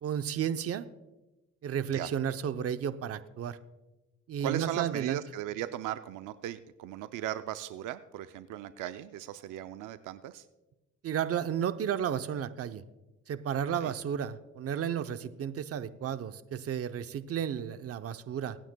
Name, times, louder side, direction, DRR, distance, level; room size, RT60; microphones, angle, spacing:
voice 1, 0.0-0.9 1.6-3.6 4.3-5.2 11.0-12.8 13.3-18.6, right 9 dB, 50° right, 11 dB, 0.7 m, -33 dB
voice 2, 4.4-10.5 13.8-13.9, right 12 dB, 85° right, 11 dB, 0.5 m, -37 dB
24.5 x 9.1 x 2.2 m, 1.1 s
cardioid pair, 90°, 30 cm